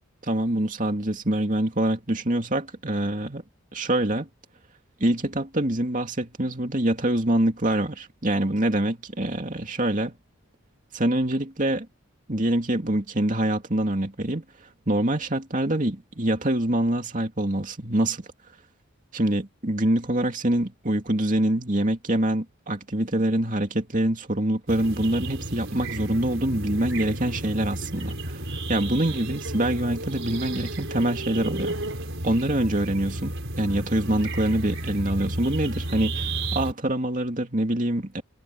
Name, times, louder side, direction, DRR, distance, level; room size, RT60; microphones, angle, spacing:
voice 1, 0.2-3.4 3.7-4.3 5.0-10.1 10.9-11.9 12.3-14.4 14.9-18.2 19.1-28.4 28.7-31.8 32.2-38.2, right 1 dB, 35° right, 2.6 m, -25 dB
sound 1, 24.7-36.7, right 1 dB, 60° right, 5.1 m, -32 dB
head